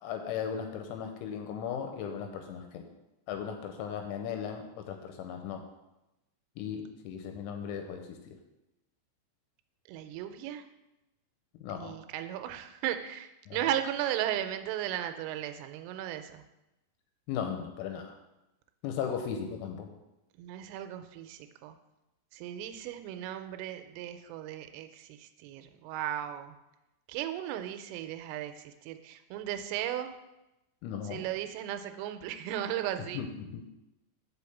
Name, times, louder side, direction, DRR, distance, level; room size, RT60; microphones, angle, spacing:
voice 1, 0.0-2.9 3.3-5.6 6.6-8.4 11.6-12.0 13.5-13.7 17.3-18.2 18.8-19.9 30.8-31.2 33.1-33.8, left 7 dB, 85° left, 5 dB, 3.0 m, -37 dB
voice 2, 9.9-10.6 11.8-16.4 20.4-21.8 22.3-26.5 27.1-30.1 31.1-33.2, right 11 dB, 85° right, 8 dB, 3.1 m, -36 dB
6.5 x 5.3 x 7.0 m, 0.96 s
omnidirectional pair, 5.8 m